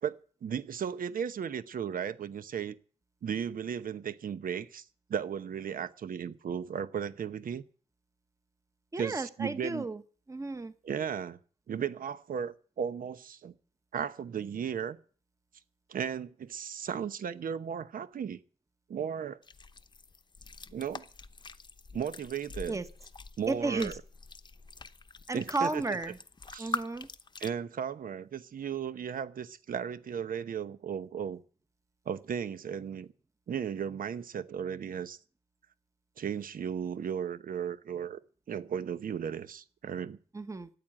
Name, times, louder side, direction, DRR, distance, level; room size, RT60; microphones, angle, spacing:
voice 1, 0.0-2.8 3.2-4.8 5.1-7.6 9.0-9.9 10.8-11.4 11.7-13.6 13.9-15.0 15.9-18.4 18.9-19.4 20.7-21.0 21.9-22.8 23.4-23.9 25.3-26.0 26.5-26.8 27.4-31.4 32.1-33.1 33.5-35.2 36.2-38.2 38.5-40.2, right 8 dB, 75° right, 0.9 m, -35 dB
voice 2, 8.9-10.0 10.3-10.7 22.7-22.9 23.5-24.0 25.3-26.2 26.6-27.1 40.3-40.7, right 3 dB, 20° right, 1.1 m, -33 dB
sound 1, 19.4-27.5, left 4 dB, 30° left, 0.8 m, -44 dB
14.0 x 9.5 x 8.6 m
wide cardioid pair, 130°, 15 cm